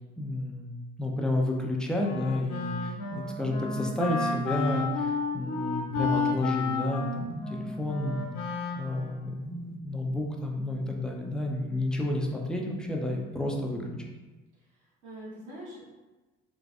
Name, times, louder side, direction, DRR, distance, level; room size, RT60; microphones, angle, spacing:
voice 1, 0.2-0.7 1.0-14.0, left 1 dB, ahead, 0 dB, 0.5 m, -31 dB
Wind instrument woodwind instrument, 2.0-9.3, left 4 dB, 45° left, 0.6 m, -32 dB
voice 2, 14.5-15.9, right 1 dB, 65° right, -7 dB, 1.5 m, -45 dB
3.5 x 3.1 x 2.5 m, 1.2 s
figure-of-eight pair, 55°, 36 cm